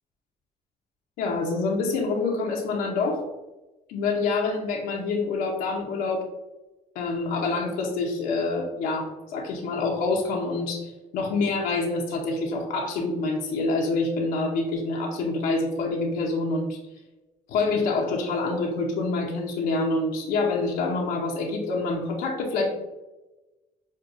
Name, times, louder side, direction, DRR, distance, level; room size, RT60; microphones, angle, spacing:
voice 1, 1.2-3.2 3.9-6.2 6.9-16.8 17.5-22.7, left 3 dB, 85° left, 0 dB, 0.7 m, -26 dB
6.3 x 2.2 x 2.5 m, 1.1 s
cardioid pair, 105°, 15 cm